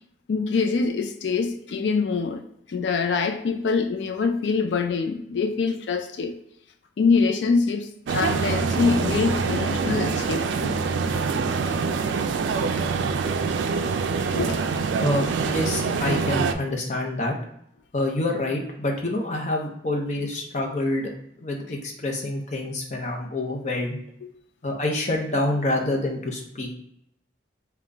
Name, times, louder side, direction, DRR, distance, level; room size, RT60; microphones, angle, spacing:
voice 1, 0.3-2.4 2.7-6.3 7.0-10.8 14.3-14.7 24.2-24.3, left 4 dB, 80° left, 0.4 m, -24 dB
sound 1, 8.1-16.6, right 5 dB, 90° right, 0.3 m, -25 dB
voice 2, 15.0-17.3 17.9-21.1 21.4-24.0 24.6-26.7, left 1 dB, 40° left, 0.6 m, -27 dB
3.8 x 2.2 x 3.3 m
head